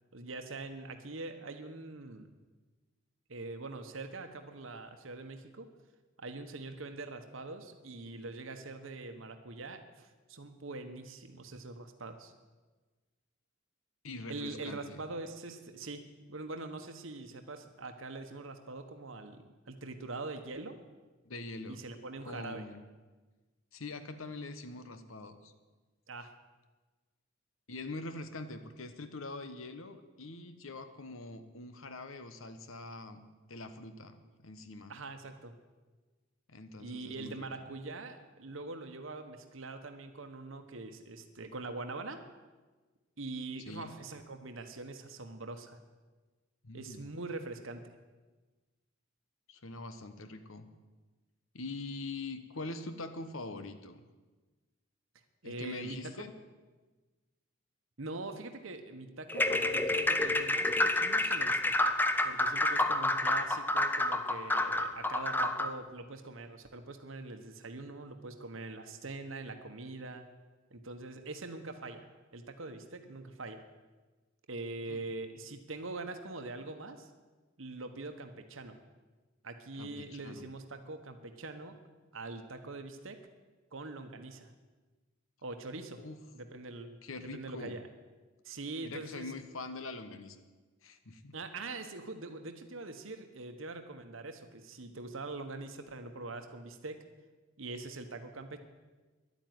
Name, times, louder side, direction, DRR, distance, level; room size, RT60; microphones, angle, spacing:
voice 1, 0.1-2.3 3.3-5.7 6.2-12.3 14.3-16.0 16.3-20.7 21.7-22.6 26.1-26.3 34.9-35.5 36.8-42.2 43.2-45.8 46.7-47.8 55.4-56.0 58.0-61.7 62.2-70.2 70.7-73.6 74.5-77.1 77.6-78.8 79.4-81.8 82.1-83.2 83.7-84.5 85.4-86.0 86.3-87.8 88.4-89.3 91.3-97.0 97.6-98.6, right 3 dB, 70° right, 7 dB, 1.2 m, -43 dB
voice 2, 14.0-15.0 21.2-21.8 22.3-22.8 23.7-25.5 27.7-34.9 36.5-37.6 43.7-43.9 46.6-47.0 49.5-50.7 51.5-54.0 55.4-56.3 74.9-75.1 79.8-80.5 86.0-86.2 87.0-87.8 88.8-90.4 90.8-91.3, left 2 dB, 75° left, 10 dB, 1.2 m, -44 dB
sound 1, 59.3-65.8, left 2 dB, 10° left, 0.5 m, -29 dB
11.5 x 9.3 x 9.5 m, 1.3 s
head